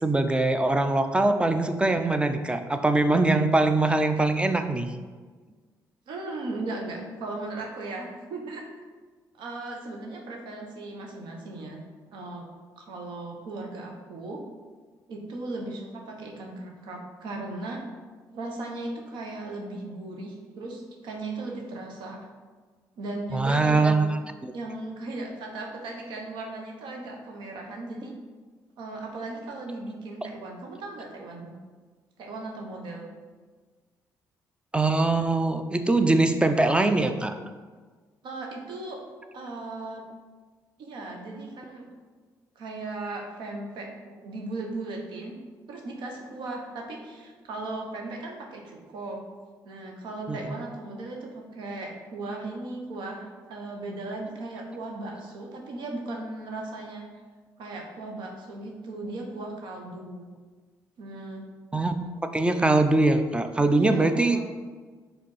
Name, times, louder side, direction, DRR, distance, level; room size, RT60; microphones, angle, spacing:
voice 1, 0.0-4.9 23.3-24.5 34.7-37.3 50.3-50.4 61.7-61.9 62.2-64.4, right 2 dB, 15° right, 8 dB, 0.5 m, -22 dB
voice 2, 6.1-8.6 9.3-11.8 12.1-12.5 12.8-14.4 15.1-17.8 18.3-22.2 23.0-24.1 24.5-28.1 28.8-31.5 32.2-33.1 38.2-39.0 39.3-40.0 40.8-41.8 42.5-45.4 45.7-49.2 49.6-57.1 57.6-60.3 61.0-61.5 63.7-64.4, right 2 dB, 80° right, 1 dB, 1.1 m, -37 dB
5.1 x 3.4 x 5.6 m, 1.4 s
cardioid pair, 75°, 8 cm